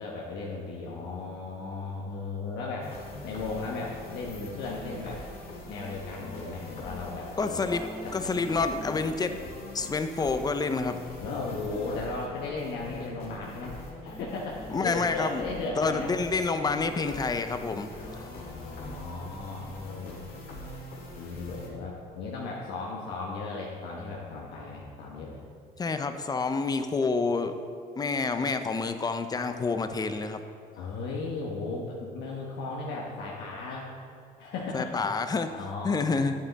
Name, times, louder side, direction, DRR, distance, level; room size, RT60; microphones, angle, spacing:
voice 1, 0.0-2.9 3.2-5.2 5.7-8.3 11.2-16.2 17.9-20.3 21.1-25.4 30.7-33.9 34.4-35.0 35.4-36.1, left 3 dB, 85° left, -3 dB, 1.1 m, -36 dB
sound 1, 2.8-21.7, left 2 dB, 60° left, 1.9 m, -43 dB
voice 2, 7.4-7.9 8.1-9.4 9.7-11.0 14.7-15.4 15.8-17.9 25.8-27.6 28.0-30.4 34.7-35.5 35.8-36.3, left 4 dB, 25° left, 8 dB, 0.6 m, -28 dB
8.7 x 7.4 x 4.1 m, 2.3 s
cardioid pair, 110°, 17 cm